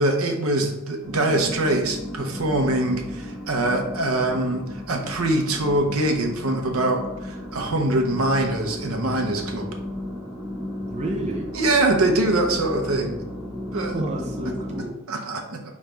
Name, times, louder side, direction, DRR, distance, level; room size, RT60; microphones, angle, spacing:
voice 1, 0.0-9.7 11.5-13.2 13.7-13.9 15.1-15.7, right 2 dB, 75° right, 3 dB, 0.7 m, -23 dB
sound 1, 1.0-14.8, left 1 dB, 10° right, 1.2 m, -34 dB
voice 2, 10.9-11.5 13.7-15.2, right 1 dB, 30° right, 0 dB, 0.5 m, -30 dB
5.1 x 3.1 x 3.3 m, 0.99 s
head